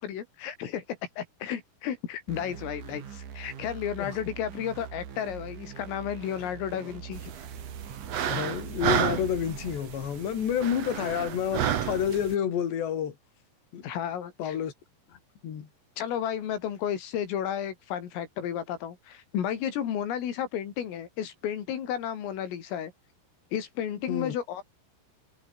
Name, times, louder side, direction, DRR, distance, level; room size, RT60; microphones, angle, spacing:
voice 1, 0.0-7.3 13.8-14.6 16.0-22.9 23.5-24.6, left 9 dB, 85° left, 5.7 m, -33 dB
sound 1, 2.3-9.8, right 8 dB, 45° right, 3.6 m, -42 dB
sound 2, 7.1-12.3, right 9 dB, 90° right, 1.4 m, -31 dB
voice 2, 8.2-13.2 13.7-13.8 14.4-14.7 15.4-15.7 24.1-24.4, left 9 dB, 60° left, 5.5 m, -29 dB
omnidirectional pair, 5.7 m